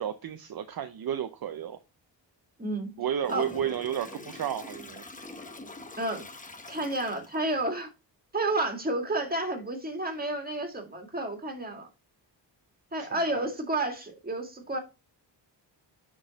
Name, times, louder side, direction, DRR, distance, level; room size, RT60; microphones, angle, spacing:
voice 1, 0.0-1.8 3.0-5.0 13.0-13.1 13.3-13.5, right 9 dB, 55° right, 0.7 m, -32 dB
voice 2, 2.6-2.9 3.3-3.5 6.0-6.2 6.7-7.9 8.3-11.9 12.9-14.8, right 2 dB, 20° right, 1.9 m, -31 dB
Toilet flush, 3.2-7.6, left 2 dB, 20° left, 0.9 m, -44 dB
9.9 x 3.9 x 4.0 m
wide cardioid pair, 135°, 44 cm